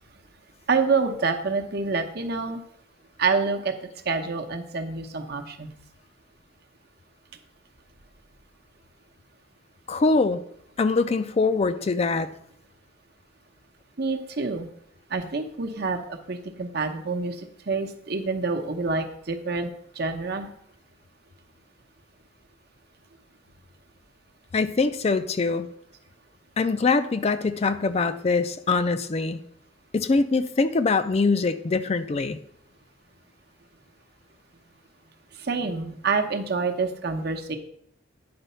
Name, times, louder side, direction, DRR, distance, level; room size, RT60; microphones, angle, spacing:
voice 1, 0.7-2.6 3.2-3.7 4.0-5.7 14.0-14.7 15.1-20.5 35.4-37.6, right 4 dB, 55° right, 5 dB, 0.9 m, -27 dB
voice 2, 9.9-10.4 10.8-12.3 24.5-25.7 26.6-29.4 29.9-32.4, left 3 dB, 35° left, 10 dB, 0.4 m, -23 dB
9.6 x 4.0 x 5.6 m, 0.72 s
head